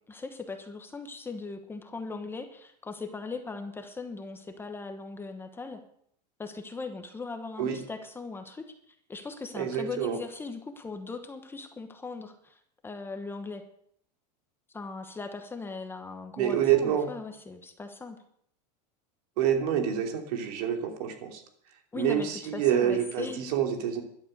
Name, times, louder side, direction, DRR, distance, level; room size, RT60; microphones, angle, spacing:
voice 1, 0.1-5.8 6.4-13.6 14.7-18.2 21.9-23.4, left 4 dB, 10° left, 6 dB, 1.1 m, -39 dB
voice 2, 9.5-10.2 16.4-17.1 19.4-21.4 22.0-24.0, right 9 dB, 65° right, 4 dB, 2.9 m, -27 dB
12.5 x 11.5 x 6.6 m, 0.68 s
supercardioid pair, 155°, 21 cm